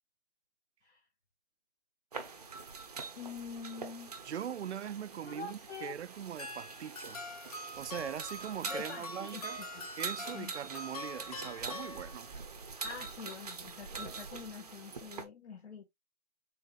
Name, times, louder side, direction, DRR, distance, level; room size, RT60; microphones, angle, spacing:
sound 1, 2.1-15.2, right 4 dB, 35° right, 0.7 m, -45 dB
voice 1, 3.2-4.2 5.2-5.9 8.7-9.4 9.7-9.9 10.3-10.5 12.8-15.9, left 5 dB, 65° left, 1.5 m, -45 dB
voice 2, 4.2-7.2 7.8-9.6 10.0-12.3, right 9 dB, 70° right, 0.5 m, -41 dB
sound 2, 6.4-12.5, left 1 dB, 30° left, 0.9 m, -44 dB
5.6 x 3.8 x 2.3 m
hypercardioid pair, 165°, 36 cm